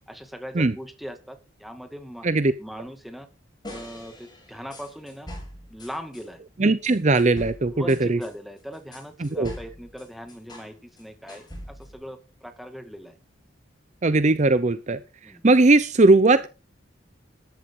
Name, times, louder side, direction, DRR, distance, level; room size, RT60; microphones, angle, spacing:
voice 1, 0.1-2.3 2.6-3.3 3.7-5.3 5.7-6.4 7.7-13.2 15.2-15.4, equal, ahead, 7 dB, 2.1 m, -40 dB
sound 1, 3.6-6.3 6.8-10.7 11.0-12.0, left 1 dB, 20° left, 7.5 m, -42 dB
voice 2, 6.6-8.2 9.2-9.5 14.0-16.5, right 2 dB, 40° right, 14 dB, 0.7 m, -19 dB
14.0 x 11.5 x 3.8 m, 0.31 s
head